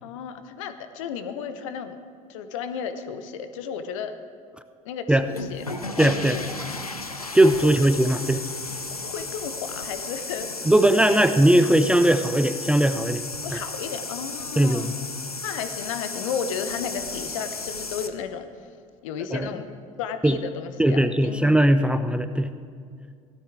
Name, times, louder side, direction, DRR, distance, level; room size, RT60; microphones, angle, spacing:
voice 1, 0.0-2.0 2.3-4.1 4.8-5.6 6.0-6.5 9.0-11.2 13.4-14.9 15.4-18.5 19.0-19.7 20.0-21.4, left 7 dB, 60° left, 10 dB, 0.8 m, -33 dB
sound 1, 5.2-18.1, left 3 dB, 90° left, 0.6 m, -34 dB
voice 2, 6.0-6.4 7.3-8.4 10.7-13.2 14.6-14.8 19.3-19.5 20.2-20.4 20.8-22.5, right 1 dB, 5° right, 10 dB, 0.4 m, -19 dB
17.0 x 12.5 x 3.6 m, 2.2 s
figure-of-eight pair, 65°, 18 cm